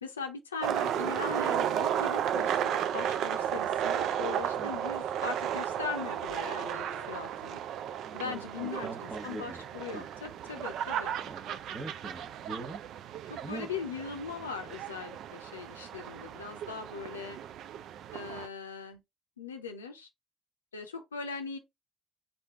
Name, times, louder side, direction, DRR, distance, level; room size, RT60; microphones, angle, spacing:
voice 1, 0.0-7.6 8.1-11.2 13.3-17.4 18.1-19.0 19.4-20.1 20.7-21.6, left 5 dB, 80° left, 0.5 m, -40 dB
sound 1, 0.6-18.5, right 10 dB, 60° right, 0.4 m, -34 dB
sound 2, 3.8-5.3 6.4-8.0, right 1 dB, 90° right, 1.0 m, -50 dB
voice 2, 8.0-9.6 9.9-10.1 11.2-12.8 13.4-13.7, right 3 dB, 40° right, 1.0 m, -42 dB
4.3 x 2.6 x 3.6 m
figure-of-eight pair, 45°, 0 cm